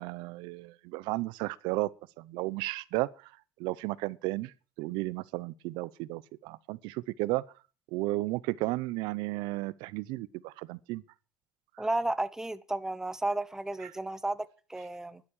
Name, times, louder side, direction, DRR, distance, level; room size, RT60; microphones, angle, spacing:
voice 1, 0.0-1.9 2.2-3.3 3.6-7.4 7.9-11.0 11.8-11.9 13.8-13.9, right 20 dB, 80° right, 0.7 m, -34 dB
voice 2, 11.8-15.2, right 2 dB, 5° right, 0.9 m, -33 dB
12.0 x 11.5 x 6.5 m
cardioid pair, 120°, 8 cm